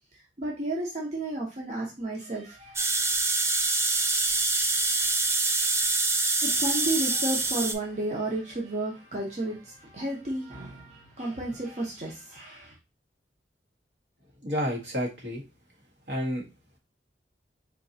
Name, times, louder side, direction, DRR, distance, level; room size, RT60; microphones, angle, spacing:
voice 1, 0.4-3.2 6.4-12.7, right 2 dB, 40° right, -3 dB, 0.9 m, -32 dB
sound 1, 2.8-7.7, right 3 dB, 15° right, 0.3 m, -25 dB
voice 2, 14.4-15.4 16.1-16.4, equal, 75° right, -3 dB, 1.6 m, -30 dB
4.5 x 2.9 x 2.7 m, 0.27 s
head